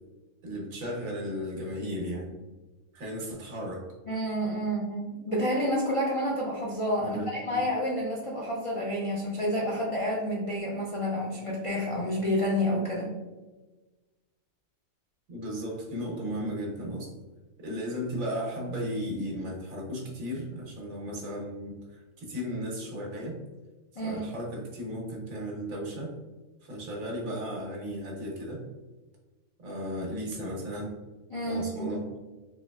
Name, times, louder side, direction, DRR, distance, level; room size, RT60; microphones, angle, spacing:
voice 1, 0.4-2.4 2.9-3.9 7.0-7.6 15.3-17.1 17.6-23.4 24.0-26.2 26.6-28.6 29.6-30.9 31.4-32.1, equal, 75° right, -2 dB, 1.5 m, -35 dB
voice 2, 4.1-13.1 24.0-24.3 31.3-32.0, equal, 55° left, -4 dB, 0.3 m, -29 dB
3.9 x 3.0 x 2.3 m, 1.2 s
omnidirectional pair, 1.4 m